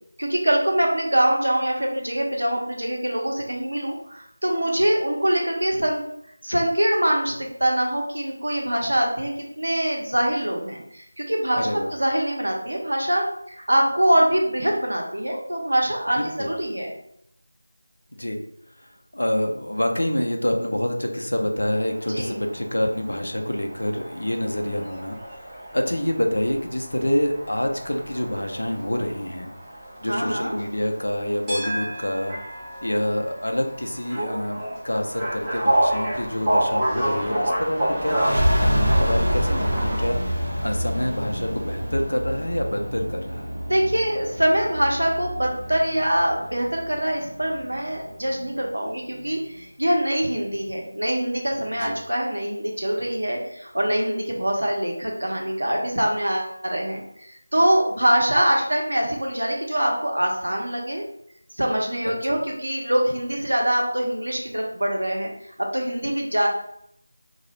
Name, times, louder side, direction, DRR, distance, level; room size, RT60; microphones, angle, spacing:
voice 1, 0.2-6.0 6.4-9.3 9.6-16.9 22.1-22.3 30.1-30.6 43.7-61.0 61.6-65.3 65.6-66.5, right 1 dB, 85° right, 0 dB, 0.8 m, -24 dB
voice 2, 11.6-11.9 16.2-16.5 18.2-18.4 18.8-29.5 30.0-32.4 32.8-43.5 51.8-52.0, left 1 dB, 85° left, 3 dB, 0.5 m, -27 dB
sound 1, 21.7-40.0, right 1 dB, 10° right, 0.4 m, -30 dB
sound 2, 38.0-49.3, equal, 60° right, 0.9 m, -27 dB
2.3 x 2.0 x 2.9 m, 0.72 s
figure-of-eight pair, 170°, 0 cm